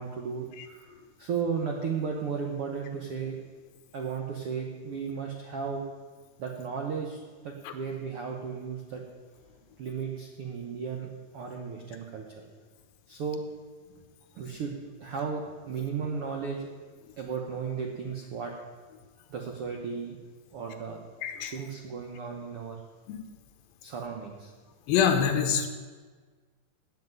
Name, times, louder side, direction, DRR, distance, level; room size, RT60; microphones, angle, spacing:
voice 1, 0.0-3.4 3.9-5.8 6.4-9.0 9.8-12.4 13.1-13.4 14.4-16.7 17.2-18.5 19.3-20.2 20.5-21.0 21.5-22.8 23.8-24.5, right 6 dB, 75° right, 1 dB, 1.3 m, -35 dB
voice 2, 21.2-21.5 23.1-23.2 24.9-25.7, left 7 dB, 85° left, 7 dB, 2.8 m, -25 dB
8.2 x 8.0 x 9.1 m, 1.5 s
omnidirectional pair, 4.1 m